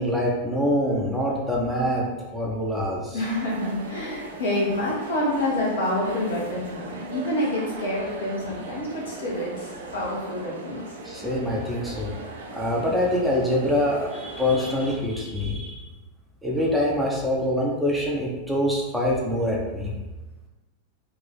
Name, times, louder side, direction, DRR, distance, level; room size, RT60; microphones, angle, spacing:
voice 1, 0.0-3.2 11.0-12.1 12.5-15.8 16.4-19.9, left 1 dB, 5° right, -4 dB, 0.7 m, -25 dB
voice 2, 3.1-10.8, left 1 dB, 65° left, -5 dB, 1.2 m, -27 dB
sound 1, 3.2-15.0, right 2 dB, 65° right, 0.5 m, -39 dB
3.0 x 2.6 x 4.1 m, 1.1 s
figure-of-eight pair, 90°, 0 cm